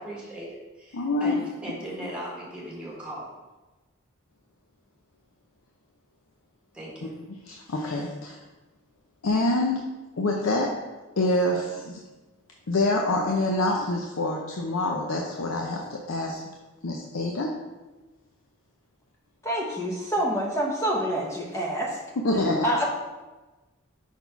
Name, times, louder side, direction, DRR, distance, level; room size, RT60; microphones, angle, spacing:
voice 1, 0.0-3.3 6.7-7.1, right 1 dB, 5° right, -5 dB, 1.5 m, -38 dB
voice 2, 0.9-1.5 7.0-8.4 9.2-9.9 10.2-10.8 11.2-12.0 12.7-16.4 16.8-17.6 22.2-22.6, left 2 dB, 70° left, 0 dB, 0.6 m, -26 dB
voice 3, 19.4-22.0 22.6-22.8, equal, 15° left, -3 dB, 0.9 m, -27 dB
5.5 x 4.1 x 4.5 m, 1.2 s
head